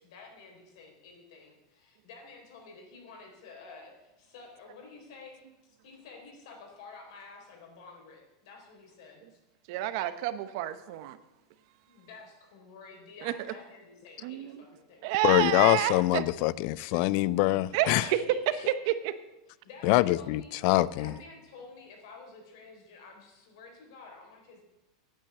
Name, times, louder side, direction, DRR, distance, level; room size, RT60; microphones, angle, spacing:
voice 1, 0.0-5.4 5.6-9.4 11.9-15.4 18.1-18.8 19.6-20.5 20.9-24.6, left 4 dB, 60° left, 4.0 m, -50 dB
voice 2, 9.7-11.2 13.2-13.3 14.2-14.6 15.0-16.2 17.7-18.2 19.0-19.1, right 14 dB, 50° right, 0.9 m, -30 dB
voice 3, 15.2-18.1 19.8-21.1, left 18 dB, 45° left, 0.4 m, -24 dB
9.0 x 8.5 x 8.4 m
supercardioid pair, 160°, 3 cm